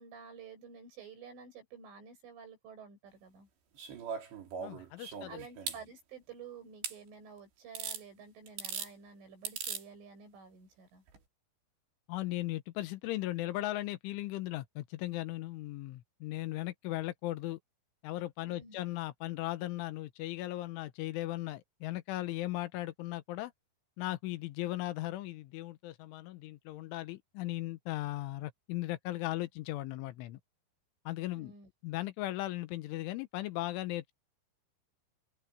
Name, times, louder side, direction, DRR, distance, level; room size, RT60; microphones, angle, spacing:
voice 1, 0.0-3.5 5.3-11.0 18.4-18.8 31.3-31.7, right 6 dB, 90° right, 10.5 m, -51 dB
sound 1, 3.8-5.8 6.8-7.0 7.8-8.0 8.5-8.9 9.5-9.8 11.1-11.2, right 6 dB, 65° right, 6.1 m, -39 dB
voice 2, 4.6-5.5 12.1-17.6 18.0-23.5 24.0-30.4 31.1-31.5 31.8-34.1, left 16 dB, 90° left, 3.6 m, -37 dB
omnidirectional pair, 5.4 m